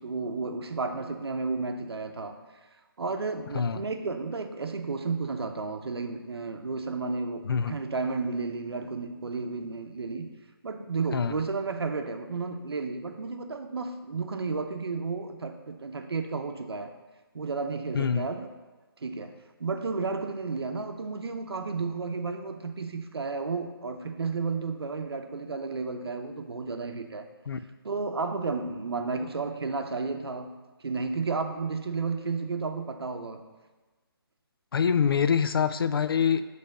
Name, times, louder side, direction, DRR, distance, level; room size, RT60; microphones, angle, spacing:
voice 1, 0.0-2.4 3.0-10.3 10.6-16.9 17.3-18.5 19.0-27.3 27.8-30.5 30.8-33.4, right 4 dB, 85° right, 6 dB, 0.7 m, -32 dB
voice 2, 17.9-18.3 27.5-27.6 34.7-36.5, left 7 dB, 65° left, 12 dB, 0.4 m, -25 dB
6.5 x 3.4 x 5.2 m, 1.3 s
hypercardioid pair, 170°, 13 cm